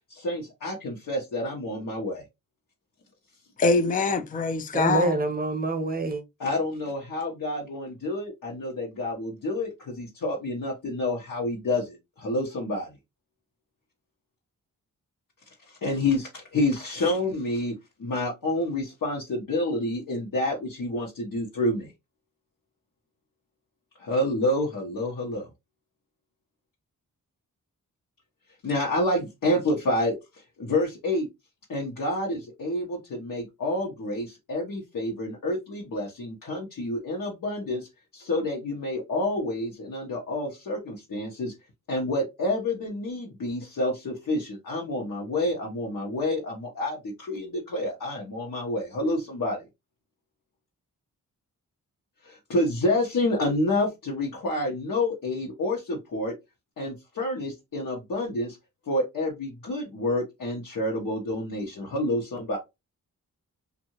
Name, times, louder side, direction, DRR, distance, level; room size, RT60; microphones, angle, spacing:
voice 1, 0.1-2.2 6.4-12.9 15.7-17.7 18.0-21.9 24.0-25.5 28.6-30.1 30.6-31.3 31.7-41.5 41.9-49.6 52.2-56.3 56.8-58.6 58.9-62.6, left 1 dB, 70° left, 1.0 m, -28 dB
voice 2, 3.6-5.1, left 3 dB, 25° left, 0.4 m, -23 dB
voice 3, 4.7-6.2, right 2 dB, 25° right, 0.8 m, -26 dB
2.7 x 2.5 x 2.9 m
wide cardioid pair, 90°, 34 cm